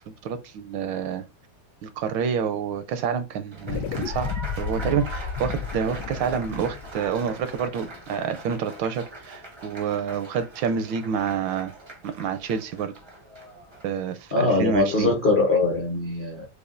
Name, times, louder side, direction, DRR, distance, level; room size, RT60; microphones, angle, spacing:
voice 1, 0.2-1.2 1.8-11.7 12.0-12.9 13.8-15.1, right 7 dB, 80° right, 1.3 m, -28 dB
Applause, 3.5-13.9, right 2 dB, 40° right, 0.3 m, -42 dB
sound 1, 3.6-8.3, left 6 dB, 70° left, 1.1 m, -33 dB
voice 2, 14.3-16.4, left 3 dB, 40° left, 0.7 m, -22 dB
7.0 x 2.3 x 2.5 m
omnidirectional pair, 2.1 m